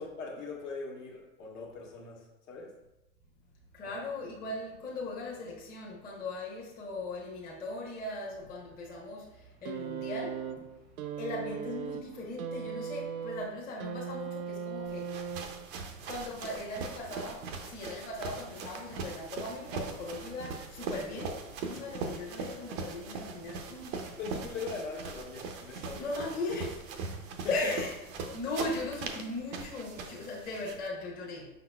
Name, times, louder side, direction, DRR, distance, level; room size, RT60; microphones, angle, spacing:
voice 1, 0.0-2.7 21.7-21.8 24.2-26.1 27.4-27.5, left 4 dB, 60° left, -1 dB, 1.3 m, -41 dB
voice 2, 3.7-9.3 9.6-10.6 11.2-15.1 16.0-24.1 25.9-26.8 27.5-28.0 28.3-31.5, left 2 dB, 20° left, -3 dB, 0.8 m, -38 dB
sound 1, 9.6-15.8 16.9-17.0, right 7 dB, 80° right, 0.6 m, -38 dB
sound 2, 14.9-30.9, right 4 dB, 25° right, 0.4 m, -41 dB
5.5 x 3.9 x 2.2 m, 0.96 s
hypercardioid pair, 120°, 41 cm